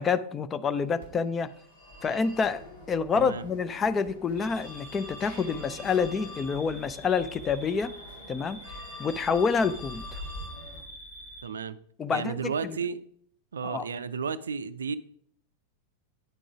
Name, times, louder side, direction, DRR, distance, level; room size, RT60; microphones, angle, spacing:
voice 1, 0.0-1.5 2.0-2.6 2.9-7.9 8.3-8.6 9.0-10.2 12.0-12.8 13.6-13.9, left 5 dB, 20° left, 0.4 m, -28 dB
Telephone, 1.0-10.8, left 1 dB, 70° left, 3.1 m, -45 dB
voice 2, 3.1-3.5 11.4-11.8 12.1-13.0 13.5-15.0, right 6 dB, 70° right, 0.3 m, -32 dB
sound 1, 4.4-11.5, right 1 dB, 50° left, 1.7 m, -47 dB
9.3 x 3.8 x 4.8 m
figure-of-eight pair, 90°, 0 cm